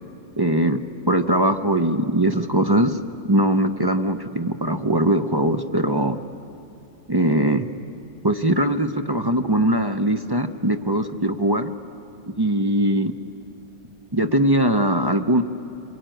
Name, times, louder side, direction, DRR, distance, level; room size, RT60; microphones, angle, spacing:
voice 1, 0.4-0.8 1.1-3.0 3.2-6.2 7.1-7.7 8.2-11.7 12.4-13.1 14.1-15.4, right 1 dB, 25° right, 6 dB, 0.5 m, -21 dB
26.5 x 22.5 x 9.0 m, 2.7 s
omnidirectional pair, 1.3 m